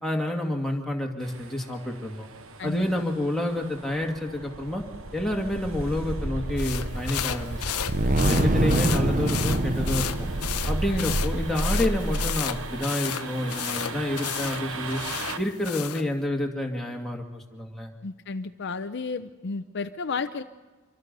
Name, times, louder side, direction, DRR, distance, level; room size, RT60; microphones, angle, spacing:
voice 1, 0.0-2.3 2.6-4.8 5.1-7.6 8.3-10.1 10.7-15.0 15.4-17.9, left 1 dB, ahead, 0 dB, 2.2 m, -29 dB
sound 1, 1.2-15.4, right 4 dB, 60° right, 1.3 m, -40 dB
voice 2, 2.6-3.0 10.9-11.1 18.0-20.4, left 4 dB, 50° left, 9 dB, 0.6 m, -33 dB
sound 2, 4.4-12.8, right 1 dB, 35° right, 0.8 m, -27 dB
sound 3, 6.6-16.1, left 10 dB, 85° left, 0.8 m, -34 dB
26.0 x 24.0 x 5.4 m, 1.3 s
head